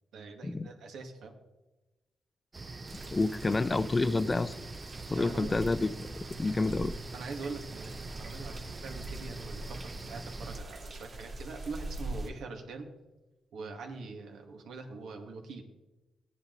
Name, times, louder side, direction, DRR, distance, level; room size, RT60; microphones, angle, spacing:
voice 1, 0.1-1.3 5.2-5.5 7.1-12.9 13.5-15.6, right 4 dB, 85° right, 3 dB, 2.1 m, -43 dB
sound 1, 2.5-10.6, right 3 dB, 25° right, 0.6 m, -44 dB
sound 2, 2.9-12.3, right 2 dB, 40° right, 2.2 m, -44 dB
voice 2, 3.1-4.6 5.1-6.1 6.4-6.9, left 3 dB, 25° left, 14 dB, 0.5 m, -28 dB
15.5 x 10.0 x 4.0 m, 1.1 s
cardioid pair, 110°, 0 cm